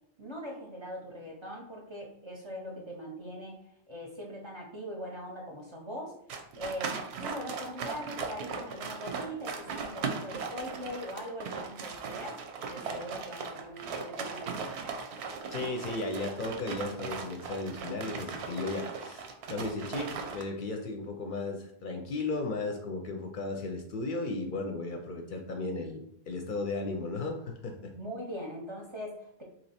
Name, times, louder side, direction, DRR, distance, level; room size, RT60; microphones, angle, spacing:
voice 1, 0.2-6.2 6.6-14.8 27.9-29.4, equal, 35° right, -2 dB, 0.5 m, -41 dB
sound 1, 6.3-20.4, right 5 dB, 90° right, 0.8 m, -38 dB
voice 2, 15.5-27.9, left 3 dB, 60° left, 3 dB, 0.6 m, -35 dB
3.0 x 2.7 x 4.2 m, 0.74 s
omnidirectional pair, 1.1 m